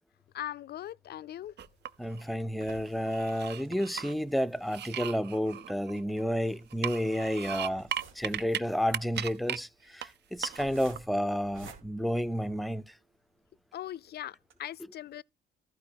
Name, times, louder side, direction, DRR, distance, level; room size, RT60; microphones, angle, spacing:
voice 1, 0.3-1.5 13.7-15.2, left 12 dB, 55° left, 0.4 m, -40 dB
sound 1, 1.6-2.2 2.7-4.1 4.6-6.3 6.7-8.6 8.9-9.6 10.0-10.1 10.4-11.0, right 10 dB, 60° right, 0.6 m, -37 dB
sound 2, 1.6-13.0 13.5-13.6 13.9-14.0 14.4-14.5, right 5 dB, 80° right, 2.6 m, -56 dB
voice 2, 2.0-7.9 8.2-9.7 9.9-12.8, equal, ahead, 0.5 m, -31 dB
14.0 x 4.8 x 4.6 m
cardioid pair, 90°, 20 cm